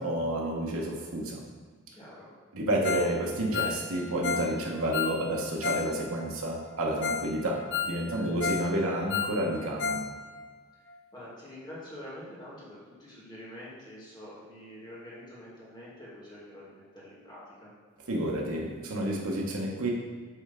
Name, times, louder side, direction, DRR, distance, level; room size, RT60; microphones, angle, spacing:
voice 1, 0.0-1.4 2.5-10.0 18.1-19.9, right 1 dB, 85° right, -2 dB, 1.1 m, -30 dB
voice 2, 2.0-2.3 8.2-8.6 11.1-17.7, left 1 dB, 20° left, -7 dB, 1.8 m, -46 dB
Ringtone, 2.8-3.1 3.4-5.9 6.2-6.3 6.7-6.8 7.0-7.3 7.6-8.7 9.0-10.1 10.3-10.4 10.9-11.0, left 6 dB, 55° left, 0.5 m, -32 dB
7.9 x 3.3 x 3.7 m, 1.5 s
head